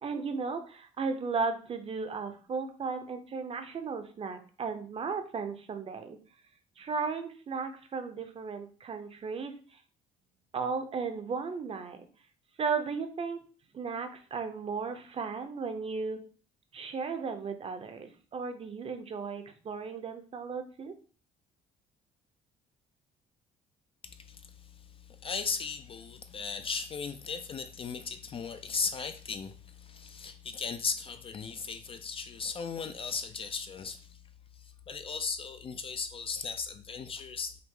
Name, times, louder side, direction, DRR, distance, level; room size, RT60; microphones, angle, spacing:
voice 1, 0.0-6.2 6.8-9.8 10.5-12.1 12.6-13.4 13.7-16.2 16.7-20.9, right 5 dB, 35° right, 8 dB, 0.6 m, -35 dB
voice 2, 25.2-34.1 34.9-37.6, left 5 dB, 35° left, 10 dB, 0.4 m, -36 dB
5.7 x 2.0 x 3.7 m, 0.40 s
cardioid pair, 110°, 17 cm